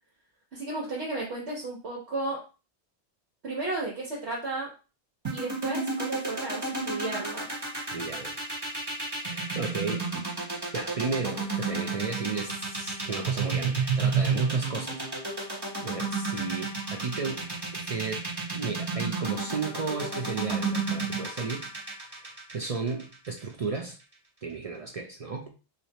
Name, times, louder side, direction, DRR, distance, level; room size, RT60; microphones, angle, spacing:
voice 1, 0.5-2.4 3.4-4.7 5.3-7.5, right 2 dB, 70° right, 1.3 m, -33 dB
sound 1, 5.2-23.4, right 4 dB, 20° right, 1.1 m, -30 dB
voice 2, 7.9-8.3 9.2-10.1 10.7-15.0 15.8-17.5 17.7-18.3 18.5-21.7 22.1-24.0 24.4-25.5, right 4 dB, 50° right, 0.4 m, -34 dB
3.1 x 2.6 x 4.1 m
omnidirectional pair, 1.2 m